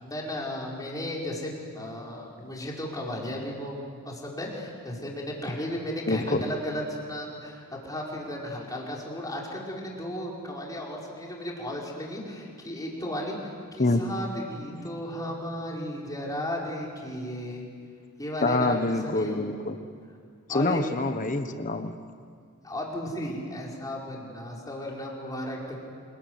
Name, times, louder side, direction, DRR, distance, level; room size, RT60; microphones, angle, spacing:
voice 1, 0.0-3.8 4.0-17.7 18.2-19.5 20.5-20.8 22.6-25.8, left 1 dB, 15° left, -3 dB, 5.2 m, -35 dB
voice 2, 6.1-6.4 13.8-14.0 14.8-14.9 18.4-19.8 20.5-21.9, left 2 dB, 35° left, 8 dB, 1.2 m, -26 dB
28.5 x 21.5 x 9.7 m, 2.2 s
head